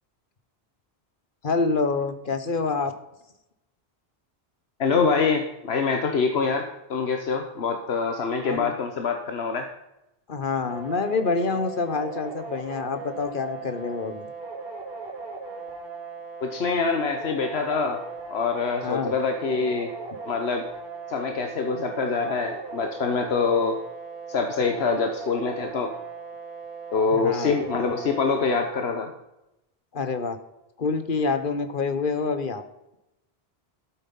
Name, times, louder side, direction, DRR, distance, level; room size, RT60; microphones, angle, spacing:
voice 1, 1.4-2.9 8.4-8.7 10.3-14.3 18.8-19.1 27.1-27.6 29.9-30.4 30.8-32.6, left 4 dB, 55° left, 9 dB, 1.3 m, -27 dB
voice 2, 4.8-9.7 16.4-18.0 18.3-19.9 20.3-20.6 21.1-23.8 24.3-25.9 26.9-29.1, left 5 dB, 85° left, 5 dB, 1.3 m, -25 dB
sound 1, 10.7-28.7, right 4 dB, 70° right, 2.7 m, -38 dB
13.5 x 8.0 x 5.5 m, 0.90 s
omnidirectional pair, 1.0 m